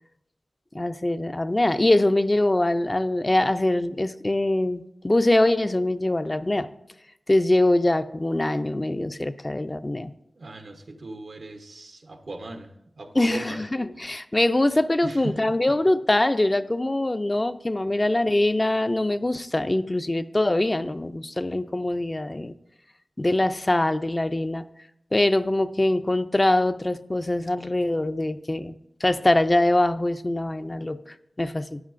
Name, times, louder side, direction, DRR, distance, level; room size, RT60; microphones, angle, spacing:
voice 1, 0.7-6.7 7.3-10.1 13.2-22.5 23.2-24.6 25.1-28.7 29.0-31.8, left 1 dB, 35° left, 10 dB, 0.4 m, -23 dB
voice 2, 10.3-13.6 15.0-15.4, right 2 dB, 85° right, 5 dB, 0.9 m, -37 dB
13.0 x 9.5 x 2.5 m, 0.82 s
wide cardioid pair, 50°, 0 cm